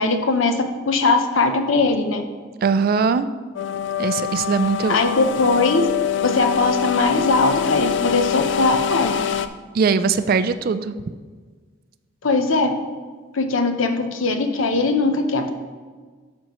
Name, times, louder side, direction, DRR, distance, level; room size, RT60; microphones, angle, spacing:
voice 1, 0.0-2.2 4.9-5.9 6.2-9.3 12.2-12.7 13.3-15.5, left 3 dB, 80° left, 6 dB, 0.8 m, -20 dB
voice 2, 2.6-3.3 4.0-5.0 9.7-10.9, right 5 dB, 45° right, 13 dB, 0.3 m, -20 dB
sound 1, 3.6-9.5, left 8 dB, 60° left, 0.4 m, -25 dB
12.0 x 5.3 x 3.0 m, 1.5 s
head